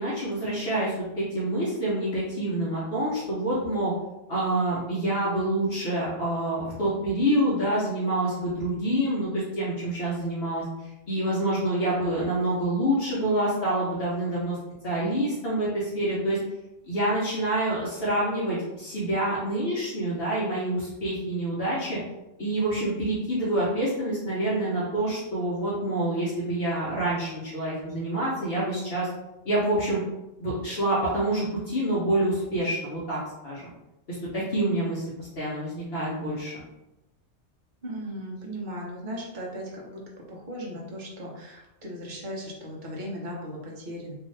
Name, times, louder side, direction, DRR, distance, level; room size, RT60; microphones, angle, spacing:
voice 1, 0.0-3.9 4.3-10.6 11.1-14.6 14.8-16.4 16.9-22.0 22.4-29.1 29.4-30.0 30.4-33.7 34.1-36.6, right 1 dB, 55° left, -7 dB, 0.9 m, -27 dB
voice 2, 37.8-44.1, equal, 45° right, -3 dB, 0.8 m, -37 dB
2.7 x 2.4 x 3.2 m, 0.96 s
omnidirectional pair, 1.3 m